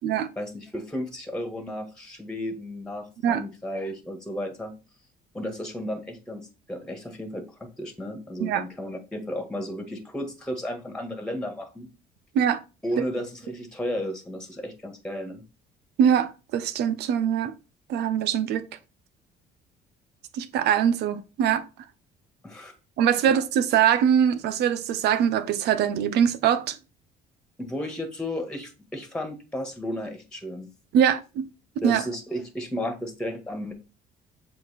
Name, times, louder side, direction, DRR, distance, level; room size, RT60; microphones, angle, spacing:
voice 1, 0.4-4.7 5.3-11.9 12.8-15.4 22.4-22.7 27.6-30.7 31.8-33.7, left 1 dB, 5° left, 1.9 m, -33 dB
voice 2, 16.0-17.5 17.9-18.7 20.3-21.6 23.0-26.7 30.9-31.5 31.8-32.0, right 9 dB, 80° right, 1.0 m, -22 dB
7.7 x 4.2 x 4.3 m
cardioid pair, 110°, 17 cm